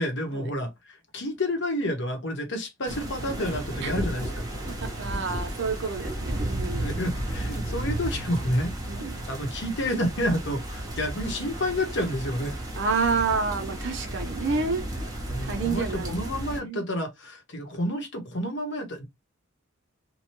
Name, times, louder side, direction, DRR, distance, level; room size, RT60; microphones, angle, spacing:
voice 1, 0.0-4.4 6.8-8.7 9.2-12.6 15.3-19.0, left 1 dB, 60° left, 1.1 m, -29 dB
sound 1, 2.9-16.6, right 1 dB, 20° right, 0.9 m, -33 dB
voice 2, 4.8-6.9 8.9-9.3 12.8-14.9 15.4-16.2 16.5-16.8, right 4 dB, 60° right, 0.8 m, -29 dB
2.9 x 2.2 x 3.0 m
head